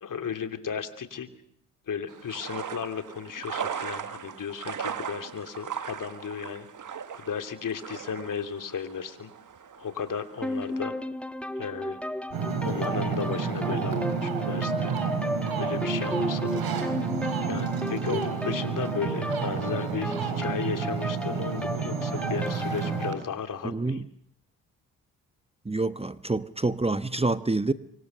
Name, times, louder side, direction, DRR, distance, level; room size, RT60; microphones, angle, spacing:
voice 1, 0.0-1.3 1.9-6.7 7.2-9.3 9.8-10.9 11.6-12.0 12.6-14.9 15.6-16.7 17.5-24.0, left 7 dB, 55° left, 7 dB, 3.0 m, -35 dB
sound 1, 2.1-10.8, right 7 dB, 50° right, 1.8 m, -38 dB
sound 2, 10.4-23.2, left 1 dB, 5° left, 1.4 m, -34 dB
Ocean, 12.3-23.1, right 6 dB, 70° right, 4.1 m, -30 dB
voice 2, 23.6-24.0 25.6-27.7, right 2 dB, 15° right, 13 dB, 1.1 m, -27 dB
25.0 x 24.0 x 6.7 m, 0.69 s
hypercardioid pair, 50°, 38 cm